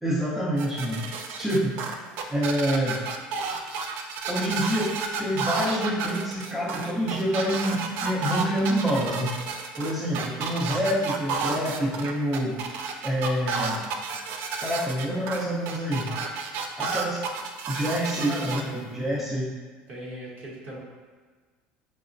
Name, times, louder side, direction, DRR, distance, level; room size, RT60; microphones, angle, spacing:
voice 1, 0.0-1.8 2.3-3.0 4.3-9.3 9.8-12.6 13.0-13.9 14.6-16.1 16.8-17.2 17.7-18.6 18.9-19.5, equal, 5° right, -7 dB, 0.7 m, -27 dB
sound 1, 0.6-18.6, right 5 dB, 70° right, 0.3 m, -31 dB
voice 2, 18.3-18.9 19.9-20.8, right 1 dB, 50° right, -4 dB, 0.8 m, -38 dB
4.7 x 2.0 x 2.6 m, 1.5 s
supercardioid pair, 120°, 4 cm